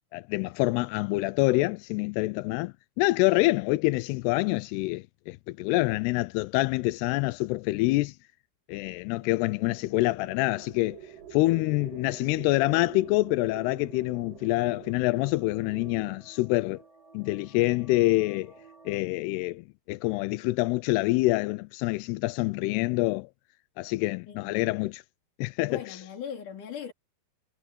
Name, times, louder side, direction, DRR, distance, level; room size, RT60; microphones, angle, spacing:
voice 1, 0.1-8.2 8.7-11.0 11.3-16.8 17.1-18.5 18.9-23.3 23.8-25.0 25.4-26.0, left 21 dB, 90° left, 2.6 m, -26 dB
sound 1, 9.0-16.1, right 9 dB, 85° right, 4.5 m, -47 dB
sound 2, 9.1-19.0, right 4 dB, 25° right, 0.8 m, -58 dB
voice 2, 24.3-24.6 25.6-26.9, left 8 dB, 55° left, 4.7 m, -39 dB
omnidirectional pair, 4.6 m